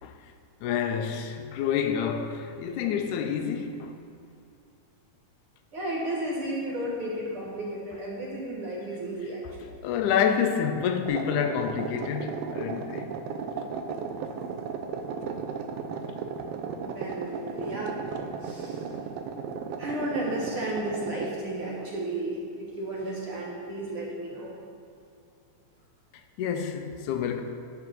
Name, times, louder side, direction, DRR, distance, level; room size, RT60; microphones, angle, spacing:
voice 1, 0.6-3.9 9.8-13.1 26.4-27.4, left 7 dB, 80° left, 7 dB, 2.1 m, -28 dB
voice 2, 5.7-9.7 16.8-17.9 18.4-18.9 19.8-24.6, right 1 dB, 55° right, -4 dB, 1.9 m, -33 dB
sound 1, 11.0-21.4, right 6 dB, 85° right, 1.4 m, -35 dB
11.0 x 4.7 x 6.1 m, 2.4 s
omnidirectional pair, 3.5 m